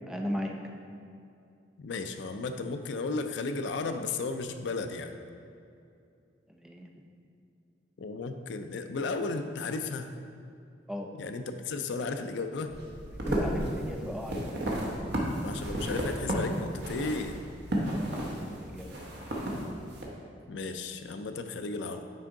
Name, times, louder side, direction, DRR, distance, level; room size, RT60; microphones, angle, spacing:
voice 1, 0.0-0.5 6.5-6.9 10.9-11.1 13.3-14.4 17.8-18.9 19.4-19.5, left 1 dB, 5° right, 1 dB, 0.4 m, -37 dB
voice 2, 1.8-5.1 8.0-10.1 11.1-12.8 15.4-17.4 20.5-22.0, left 3 dB, 70° left, 8 dB, 0.4 m, -34 dB
sound 1, 12.7-20.0, right 1 dB, 65° right, 1.0 m, -33 dB
6.1 x 4.4 x 3.8 m, 2.5 s
head